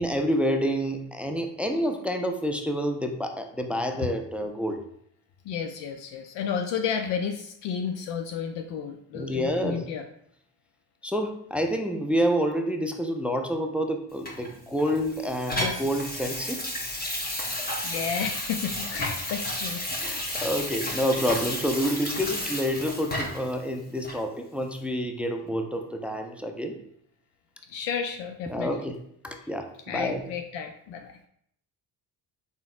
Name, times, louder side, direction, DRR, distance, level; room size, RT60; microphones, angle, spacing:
voice 1, 0.0-4.8 9.1-9.9 11.0-16.6 20.0-26.8 28.5-29.0 29.2-30.3, equal, 5° right, 4 dB, 0.3 m, -28 dB
voice 2, 5.5-10.0 15.6-15.8 17.8-20.0 27.7-28.7 29.9-31.1, left 7 dB, 65° left, 5 dB, 0.5 m, -32 dB
Water tap faucet / Sink (filling or washing), 14.2-23.5 24.0-24.2, left 1 dB, 20° left, 1.1 m, -32 dB
3.9 x 3.9 x 2.4 m, 0.70 s
supercardioid pair, 65°, 47 cm